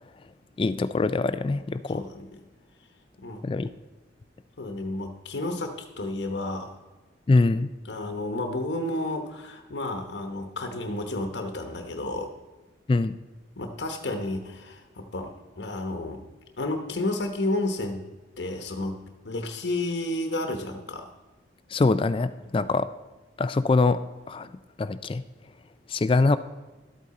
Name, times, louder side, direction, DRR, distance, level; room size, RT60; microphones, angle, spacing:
voice 1, 0.6-2.0 3.4-3.7 7.3-7.7 12.9-13.1 21.7-22.9 23.4-24.0 24.3-24.5 24.8-25.2 25.9-26.4, left 3 dB, 30° left, 13 dB, 0.3 m, -23 dB
voice 2, 1.9-2.3 3.2-3.4 4.6-6.8 7.9-12.3 13.6-16.2 16.6-18.1 18.4-21.0 22.6-22.7, left 2 dB, 70° left, 5 dB, 1.0 m, -31 dB
12.0 x 8.5 x 4.2 m, 1.2 s
head